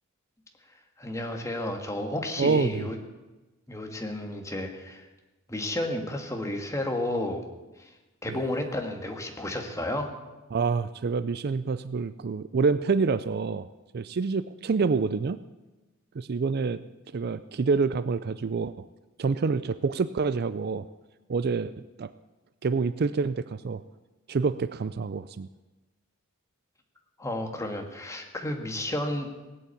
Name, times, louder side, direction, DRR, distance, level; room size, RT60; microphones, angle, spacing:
voice 1, 1.0-3.0 3.7-5.1 5.5-7.5 7.8-7.9 8.2-10.1 27.2-29.3, left 1 dB, 15° left, 3 dB, 1.7 m, -32 dB
voice 2, 2.4-2.9 8.3-8.4 10.5-13.7 13.9-15.4 16.2-16.8 17.1-18.8 19.2-20.9 21.3-21.7 22.0-22.1 22.6-23.8 24.3-25.5, right 4 dB, 45° right, 14 dB, 0.4 m, -27 dB
18.0 x 8.5 x 8.3 m, 1.1 s
head